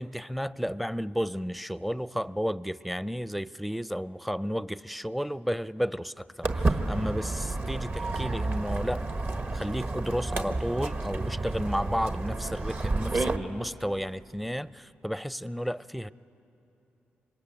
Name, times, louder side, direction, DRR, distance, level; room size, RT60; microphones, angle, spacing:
voice 1, 0.0-9.0 9.5-16.1, equal, ahead, 17 dB, 0.5 m, -32 dB
Walk footsteps, 6.4-13.4, right 2 dB, 50° right, 1.5 m, -30 dB
25.5 x 22.0 x 9.2 m, 3.0 s
supercardioid pair, 50°, 4 cm